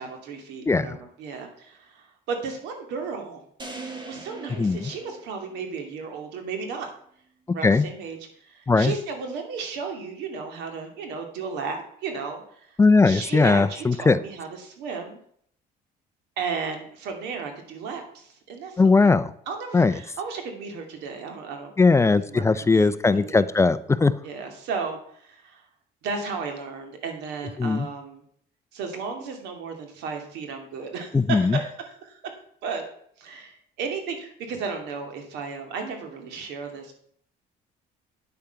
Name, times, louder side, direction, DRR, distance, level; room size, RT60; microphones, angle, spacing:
voice 1, 0.0-3.4 4.0-6.9 7.5-8.2 8.4-12.8 13.0-15.2 16.4-19.1 19.5-21.7 22.2-23.4 24.2-25.6 26.0-28.2 28.7-32.8 33.2-37.0, right 5 dB, 90° right, 4 dB, 2.4 m, -34 dB
voice 2, 0.7-1.0 4.6-4.9 7.6-7.9 8.7-8.9 12.8-14.2 18.8-19.3 19.7-19.9 21.8-24.1 27.6-27.9 31.1-31.6, left 3 dB, 15° left, 14 dB, 0.5 m, -19 dB
sound 1, 3.6-5.9, right 3 dB, 25° right, 2.4 m, -40 dB
9.1 x 8.6 x 5.8 m, 0.64 s
cardioid pair, 110°, 17 cm